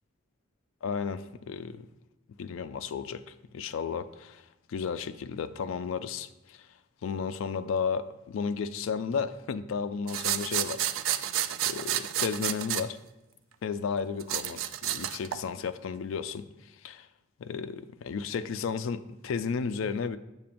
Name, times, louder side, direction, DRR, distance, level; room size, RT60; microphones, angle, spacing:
voice 1, 0.8-1.9 2.4-4.4 4.7-6.7 7.0-11.2 11.6-13.0 13.6-17.1 17.4-20.2, left 6 dB, 80° left, 11 dB, 0.4 m, -33 dB
sound 1, 10.1-12.8 14.2-15.4, right 11 dB, 75° right, 0.3 m, -30 dB
7.5 x 7.1 x 2.5 m, 0.96 s
head